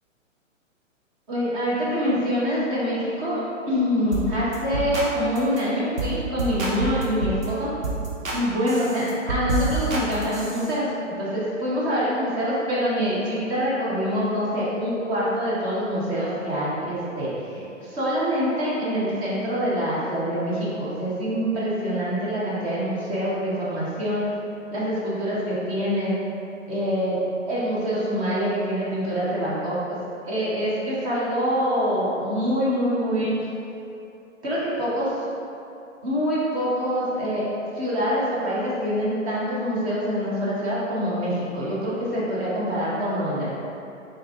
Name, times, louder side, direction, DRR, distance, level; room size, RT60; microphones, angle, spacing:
voice 1, 1.3-7.7 8.3-10.9 11.2-24.2 24.7-26.2 26.7-27.2 27.5-30.0 30.2-33.3 34.4-35.1 36.0-37.5 37.8-43.5, equal, 10° right, -9 dB, 0.5 m, -25 dB
sound 1, 4.1-4.3 4.5-5.1 5.4-5.6 6.0-6.1 6.4-7.5 7.8-8.4 8.7-10.7, right 3 dB, 85° right, 0.9 m, -28 dB
3.5 x 3.2 x 2.9 m, 2.7 s
figure-of-eight pair, 120°, 39 cm